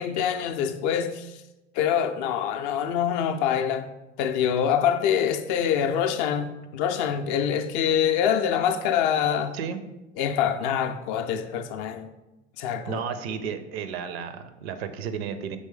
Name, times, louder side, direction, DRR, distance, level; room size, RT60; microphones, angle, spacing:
voice 1, 0.0-1.4 1.7-3.9 4.2-9.6 10.2-12.1 12.6-13.0, left 8 dB, 45° left, 0.4 m, -25 dB
voice 2, 12.9-15.6, right 7 dB, 60° right, 0.5 m, -33 dB
5.4 x 3.1 x 3.2 m
figure-of-eight pair, 75°, 36 cm